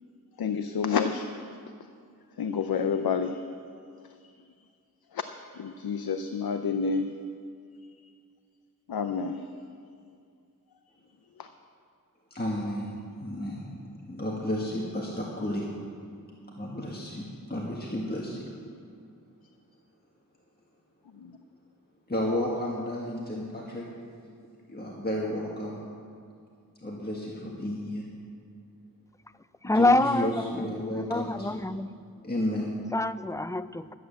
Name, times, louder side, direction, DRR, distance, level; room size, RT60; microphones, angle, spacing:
voice 1, 0.4-1.3 2.4-3.4 5.1-5.2 5.5-7.2 8.9-9.5 11.4-11.5 21.1-21.4, left 6 dB, 85° left, 8 dB, 0.6 m, -29 dB
voice 2, 12.3-13.8 14.1-15.7 16.5-18.5 22.1-23.9 24.7-25.8 26.8-28.1 29.6-31.6 32.2-32.8, left 1 dB, 25° left, -3 dB, 1.7 m, -32 dB
voice 3, 29.6-30.5 30.7-31.9 32.9-33.9, left 2 dB, 10° left, 13 dB, 0.4 m, -26 dB
12.5 x 8.7 x 7.1 m, 2.3 s
wide cardioid pair, 55°, 35 cm